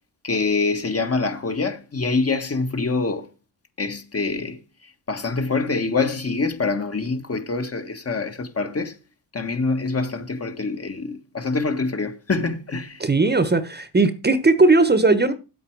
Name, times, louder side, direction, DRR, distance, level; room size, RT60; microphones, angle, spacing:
voice 1, 0.2-3.3 3.8-4.6 5.1-9.0 9.3-13.0, left 3 dB, 35° left, 1.7 m, -25 dB
voice 2, 13.0-15.3, right 3 dB, 25° right, 1.3 m, -18 dB
9.0 x 8.2 x 4.8 m
supercardioid pair, 60°, 43 cm